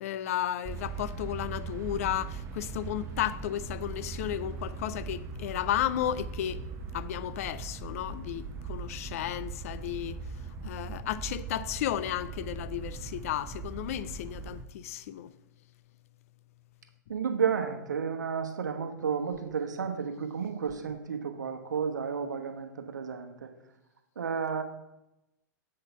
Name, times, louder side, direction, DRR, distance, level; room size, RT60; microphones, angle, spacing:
voice 1, 0.0-6.6 6.9-10.2 10.6-15.3, left 11 dB, 50° left, 0.4 m, -33 dB
sound 1, 0.6-14.6, right 4 dB, 25° right, 0.8 m, -40 dB
voice 2, 17.1-23.5 24.2-24.6, right 6 dB, 70° right, 1.0 m, -32 dB
7.5 x 4.0 x 6.7 m
figure-of-eight pair, 105°, 10 cm